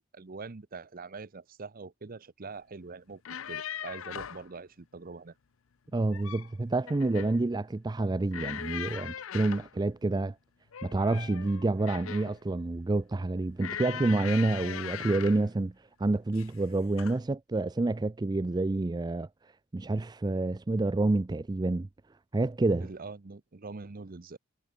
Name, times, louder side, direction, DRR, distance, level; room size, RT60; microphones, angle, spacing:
voice 1, 0.0-3.2 3.5-5.3 22.8-24.4, right 4 dB, 45° right, 0.8 m, -44 dB
sound 1, 3.1-4.5 5.9-6.5 6.9-7.4 8.3-9.7 10.7-12.4 13.6-15.5 16.3-16.6 17.0-17.2, left 9 dB, 85° left, 0.6 m, -40 dB
voice 2, 5.9-10.4 10.8-15.7 16.0-21.9 22.3-22.9, right 2 dB, 20° right, 0.4 m, -28 dB
head